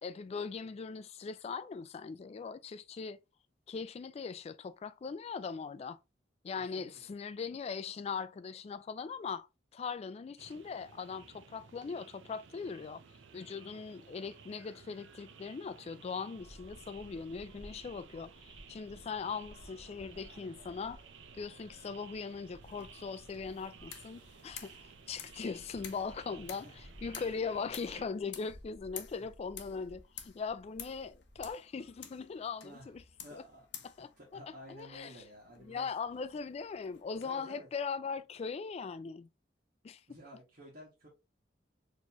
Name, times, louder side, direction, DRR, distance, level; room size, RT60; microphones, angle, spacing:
voice 1, 0.0-3.2 3.7-6.0 6.4-13.0 13.3-21.0 21.4-33.0 33.3-33.4 33.8-34.4 34.7-35.2 35.6-39.3 39.8-40.0, left 5 dB, 35° left, 0.3 m, -40 dB
voice 2, 6.7-7.1 26.3-26.8 32.6-32.9 33.2-35.9 37.2-37.7 40.1-41.1, equal, 50° right, 1.3 m, -52 dB
sound 1, 10.4-28.0, right 6 dB, 85° right, 0.5 m, -56 dB
sound 2, 16.3-31.5, equal, 25° right, 1.7 m, -57 dB
sound 3, 22.6-37.3, left 9 dB, 65° left, 0.7 m, -52 dB
4.4 x 3.0 x 2.8 m
head